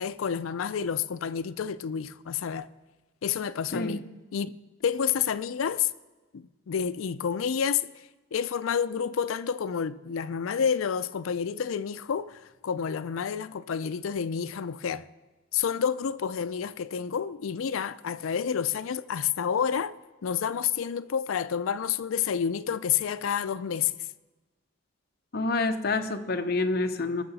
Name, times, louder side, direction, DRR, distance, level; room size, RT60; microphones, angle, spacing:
voice 1, 0.0-2.7 3.2-4.0 4.3-5.9 6.3-7.8 8.3-15.0 15.5-19.9 20.2-24.1, left 7 dB, 90° left, 0.4 m, -29 dB
voice 2, 3.7-4.1 25.3-27.2, left 3 dB, 50° left, 0.8 m, -28 dB
19.0 x 6.7 x 4.1 m
head